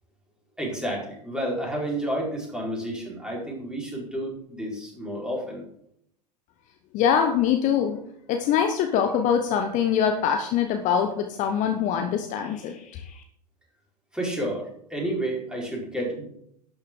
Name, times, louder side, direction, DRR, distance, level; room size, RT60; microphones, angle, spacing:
voice 1, 0.6-5.6 14.1-16.2, right 1 dB, 5° right, -3 dB, 4.5 m, -30 dB
voice 2, 6.9-8.0 8.3-13.2, left 8 dB, 35° left, 5 dB, 1.2 m, -24 dB
12.0 x 9.7 x 3.9 m, 0.71 s
figure-of-eight pair, 95°, 21 cm